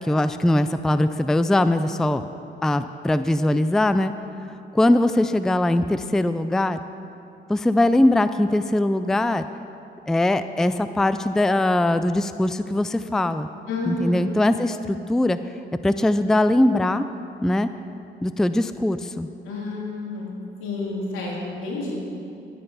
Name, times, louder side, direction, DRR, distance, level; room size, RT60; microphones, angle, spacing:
voice 1, 0.0-2.3 2.6-4.1 4.7-6.8 7.5-9.5 10.1-13.5 13.9-15.4 15.8-17.1 17.4-17.7 18.2-19.3, left 1 dB, 5° left, 11 dB, 0.3 m, -21 dB
voice 2, 13.7-14.3 19.4-20.3 20.6-22.0, left 2 dB, 85° left, -3 dB, 2.8 m, -29 dB
12.0 x 9.0 x 5.5 m, 2.6 s
cardioid pair, 90°, 20 cm